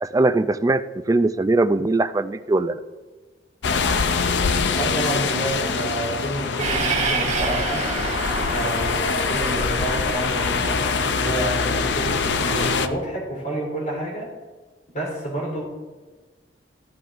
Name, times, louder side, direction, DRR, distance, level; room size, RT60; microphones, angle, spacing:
voice 1, 0.0-2.8, right 2 dB, 20° right, 10 dB, 0.3 m, -21 dB
sound 1, 3.6-12.9, left 5 dB, 70° left, 0.5 m, -24 dB
voice 2, 4.7-7.9 8.5-14.3 14.9-15.6, right 1 dB, 45° left, -2 dB, 3.2 m, -29 dB
Train, 6.6-12.9, right 4 dB, 40° right, 1.5 m, -30 dB
14.5 x 10.5 x 2.5 m, 1.4 s
head